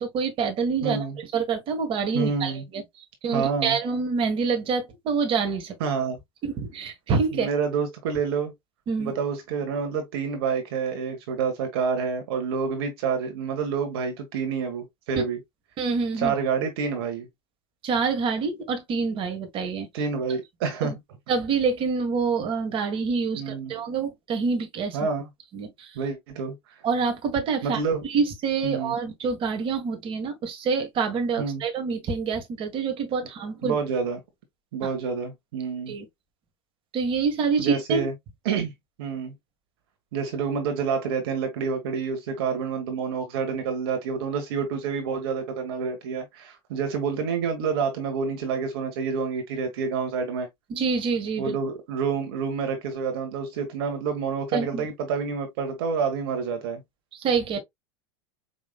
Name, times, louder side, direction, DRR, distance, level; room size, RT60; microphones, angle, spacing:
voice 1, 0.0-5.8 6.4-7.5 8.9-9.1 15.1-15.2 15.8-16.3 17.8-19.9 20.8-20.9 21.3-25.0 25.5-25.9 26.8-33.8 34.8-34.9 35.9-36.1 36.9-38.1 50.7-51.6 54.5-54.9 57.1-57.6, right 5 dB, 40° right, 1.5 m, -26 dB
voice 2, 0.8-1.2 2.1-2.6 3.3-3.8 5.8-6.2 7.3-8.5 9.0-15.4 16.2-17.3 19.9-20.9 23.3-23.7 24.9-25.2 25.9-26.5 27.6-28.0 28.6-28.9 31.4-31.6 33.6-34.2 34.7-36.0 37.6-38.1 38.4-38.7 39.0-39.3 40.1-50.5 51.4-56.8, right 5 dB, 65° right, 1.4 m, -28 dB
5.3 x 3.0 x 2.2 m
hypercardioid pair, 95°, 14 cm